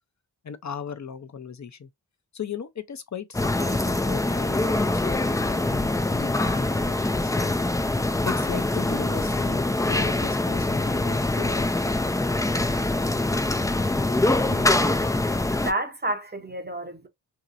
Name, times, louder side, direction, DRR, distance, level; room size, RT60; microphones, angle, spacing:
voice 1, 0.4-1.9 2.3-7.5 8.2-11.9, left 7 dB, 45° left, 0.6 m, -37 dB
sound 1, 3.3-15.7, left 2 dB, 10° left, 0.3 m, -24 dB
voice 2, 14.5-14.9 15.6-17.1, right 1 dB, 25° right, 0.7 m, -31 dB
2.9 x 2.8 x 2.5 m
cardioid pair, 45°, 41 cm